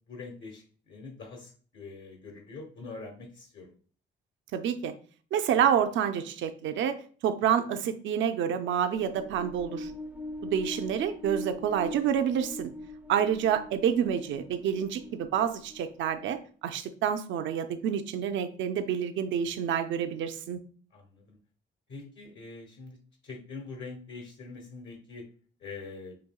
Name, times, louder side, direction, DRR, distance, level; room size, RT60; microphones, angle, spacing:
voice 1, 0.1-3.7 10.4-10.5 20.9-21.4 21.9-23.0 23.2-25.2 25.6-26.1, left 4 dB, 70° left, 1 dB, 1.1 m, -44 dB
voice 2, 4.5-4.9 5.3-7.0 7.2-9.9 10.4-12.7 13.1-20.6, right 8 dB, 75° right, 8 dB, 0.5 m, -28 dB
sound 1, 8.9-16.5, left 1 dB, 10° right, 0.5 m, -42 dB
5.1 x 2.7 x 2.2 m, 0.42 s
cardioid pair, 90°, 20 cm